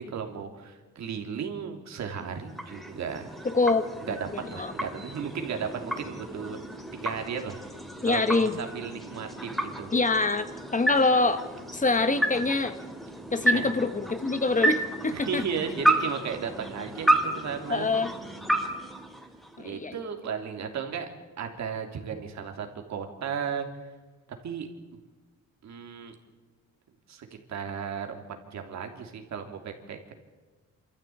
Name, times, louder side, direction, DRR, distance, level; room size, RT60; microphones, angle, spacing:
voice 1, 0.0-3.3 4.1-6.6 6.9-7.7 8.0-9.9 13.5-13.6 15.1-17.9 19.6-21.1 21.4-23.7 24.4-24.7 25.6-26.2 27.1-30.1, right 6 dB, 65° right, 4 dB, 3.1 m, -35 dB
sound 1, 2.0-19.8, right 1 dB, ahead, 2.9 m, -31 dB
voice 2, 3.4-4.2 4.6-4.7 8.0-8.6 9.9-10.5 10.7-12.8 13.3-15.4 17.7-18.1 19.6-19.9, left 3 dB, 25° left, 11 dB, 1.3 m, -25 dB
26.5 x 14.0 x 8.7 m, 1.3 s
cardioid pair, 90°, 30 cm